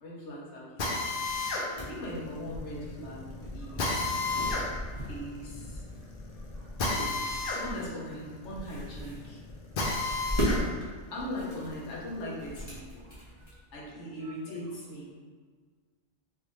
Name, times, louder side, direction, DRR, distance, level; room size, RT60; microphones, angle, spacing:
voice 1, 0.0-1.3 1.8-4.1 5.1-5.8 7.4-9.4 10.8-13.1 13.7-15.2, left 1 dB, 80° left, -5 dB, 1.2 m, -40 dB
Drill, 0.8-10.6 11.1-12.7, left 3 dB, 55° left, 0.7 m, -34 dB
sound 1, 1.2-13.8, equal, 25° left, 1.0 m, -37 dB
voice 2, 3.6-4.1 4.4-4.6 6.3-6.8 13.1-13.6 14.2-14.6, right 3 dB, 75° right, -3 dB, 1.0 m, -58 dB
3.4 x 2.7 x 3.1 m, 1.6 s
omnidirectional pair, 1.2 m